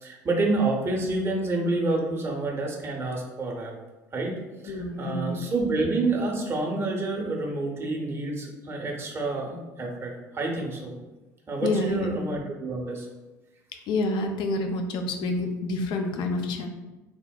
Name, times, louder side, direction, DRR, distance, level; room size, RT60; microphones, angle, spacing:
voice 1, 0.0-3.8 4.1-11.0 11.5-13.1, right 2 dB, 25° right, -1 dB, 0.6 m, -28 dB
voice 2, 4.7-5.5 11.6-12.1 13.9-16.7, left 2 dB, 55° left, 4 dB, 0.4 m, -28 dB
3.5 x 2.0 x 2.2 m, 1.1 s
hypercardioid pair, 65°, 9 cm